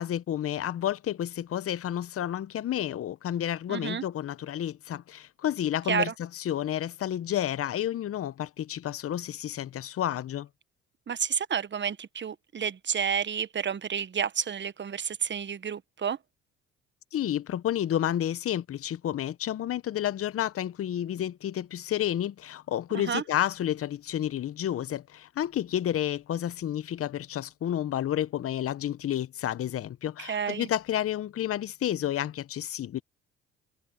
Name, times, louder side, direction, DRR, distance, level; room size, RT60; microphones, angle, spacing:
voice 1, 0.0-10.5 17.1-33.0, left 11 dB, 50° left, 1.0 m, -30 dB
voice 2, 3.7-4.0 5.9-6.1 11.1-16.2 22.9-23.2 30.2-30.7, right 7 dB, 35° right, 1.4 m, -30 dB
hypercardioid pair, 60°, 30 cm